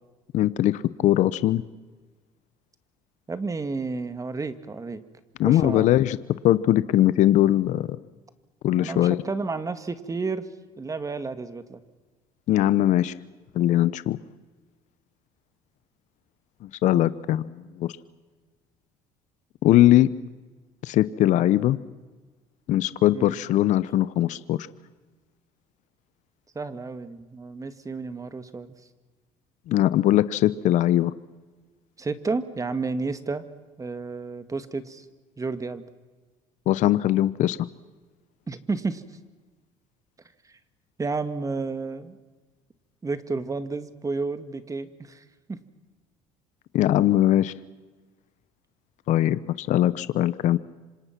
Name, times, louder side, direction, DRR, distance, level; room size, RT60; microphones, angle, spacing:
voice 1, 0.3-1.6 5.4-6.2 6.4-7.9 8.6-9.2 12.5-13.1 13.5-14.2 16.8-17.9 19.6-20.1 20.8-21.8 22.7-24.6 29.7-31.1 36.7-37.6 46.7-47.5 49.1-50.6, left 13 dB, 60° left, 16 dB, 0.9 m, -20 dB
voice 2, 3.3-5.0 5.4-6.0 8.8-10.5 10.8-11.8 23.1-23.3 26.6-28.8 32.0-33.5 33.8-35.1 35.4-35.8 38.5-39.0 40.4-40.6 41.0-42.2 43.0-45.6, right 4 dB, 25° right, 11 dB, 2.0 m, -31 dB
26.5 x 26.0 x 6.0 m, 1.3 s
supercardioid pair, 75°, 14 cm